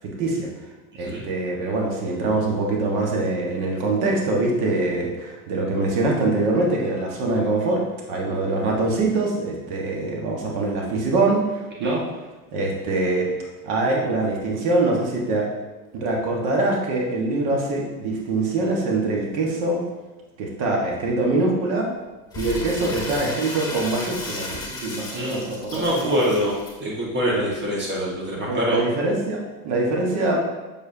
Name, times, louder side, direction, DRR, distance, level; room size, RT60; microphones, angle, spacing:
voice 1, 0.0-0.5 0.9-12.0 12.5-13.3 13.6-15.5 15.9-19.8 20.4-21.9 22.3-26.0 28.4-30.4, right 2 dB, 55° right, -1 dB, 1.6 m, -24 dB
Crumpling crinkling, 22.3-26.7, left 2 dB, 10° left, 1.9 m, -34 dB
voice 2, 25.1-26.5 26.8-28.8, equal, 25° right, -4 dB, 1.7 m, -25 dB
7.4 x 4.8 x 2.8 m, 1.1 s
supercardioid pair, 115°, 44 cm